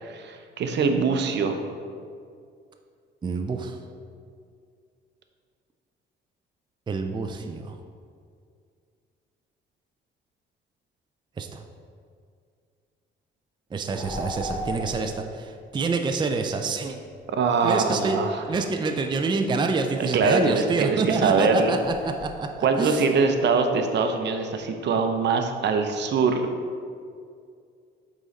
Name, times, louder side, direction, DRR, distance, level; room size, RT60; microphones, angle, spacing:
voice 1, 0.0-1.6 17.4-18.4 20.1-21.8 22.6-26.5, right 4 dB, 60° right, 6 dB, 0.7 m, -23 dB
voice 2, 3.2-3.8 6.9-7.8 11.4-11.6 13.7-17.0 17.6-18.2 18.5-23.0, right 4 dB, 25° right, 5 dB, 0.4 m, -27 dB
sound 1, 13.9-15.2 17.5-18.9 21.6-22.7, left 1 dB, 20° left, 1.1 m, -36 dB
8.2 x 3.8 x 4.1 m, 2.2 s
cardioid pair, 90°, 20 cm